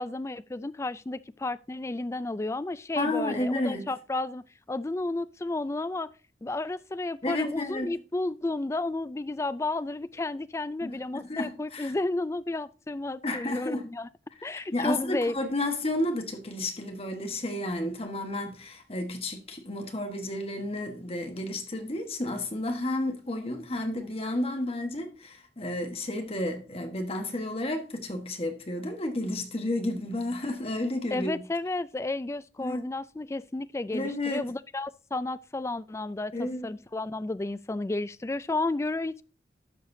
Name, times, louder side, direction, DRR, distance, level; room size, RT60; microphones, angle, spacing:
voice 1, 0.0-6.1 6.4-14.1 14.4-15.3 31.1-39.2, left 2 dB, 15° left, 0.3 m, -32 dB
voice 2, 3.0-3.8 7.2-7.9 10.8-11.0 11.3-11.9 13.2-13.8 14.5-31.4 32.6-32.8 33.9-34.4 36.3-36.7, left 1 dB, 35° left, 1.3 m, -31 dB
12.0 x 6.6 x 2.7 m
head